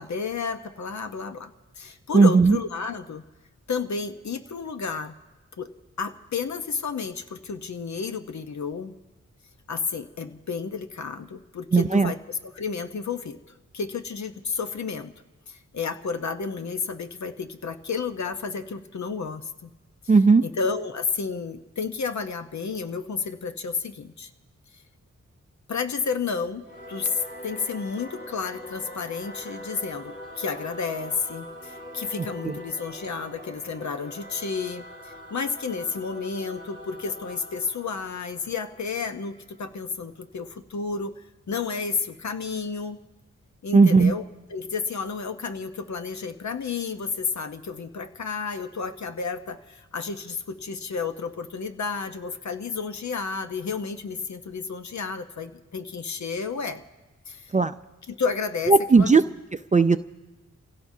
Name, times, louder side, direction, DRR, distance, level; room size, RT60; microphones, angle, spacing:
voice 1, 0.0-3.2 3.7-5.1 5.6-5.7 6.0-8.9 9.7-13.4 13.7-15.1 15.5-19.7 20.0-20.1 20.4-24.3 25.7-43.0 43.6-56.8 57.3-57.5 58.1-59.2, left 5 dB, 65° left, 8 dB, 0.9 m, -31 dB
voice 2, 2.1-2.6 11.7-12.1 20.1-20.4 32.4-32.6 43.7-44.1 57.5-57.7 58.7-59.2 59.7-60.0, right 4 dB, 25° right, 10 dB, 0.4 m, -16 dB
Singing / Musical instrument, 26.6-39.5, equal, 35° left, 2.2 m, -42 dB
30.0 x 16.5 x 2.7 m, 1.1 s
wide cardioid pair, 75°, 30 cm